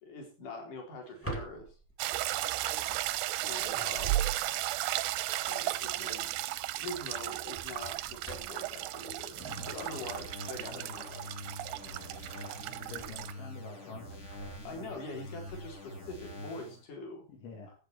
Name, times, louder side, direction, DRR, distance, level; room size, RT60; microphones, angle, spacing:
voice 1, 0.0-1.7 3.5-4.3 5.4-6.3 6.8-9.4 9.7-11.4 14.6-17.2, left 2 dB, 45° left, 2 dB, 5.3 m, -43 dB
Drawer open or close, 1.0-4.7 6.2-6.5 6.8-7.0 7.4-10.4 10.8-13.5 14.0-15.9, right 1 dB, 5° left, 0.9 m, -48 dB
sound 1, 2.0-13.3, right 15 dB, 80° right, 2.7 m, -35 dB
sound 2, 9.4-16.8, left 1 dB, 25° left, 1.5 m, -45 dB
voice 2, 12.9-14.6 17.3-17.7, left 4 dB, 75° left, 1 dB, 4.7 m, -48 dB
16.0 x 8.4 x 4.2 m, 0.34 s
omnidirectional pair, 5.4 m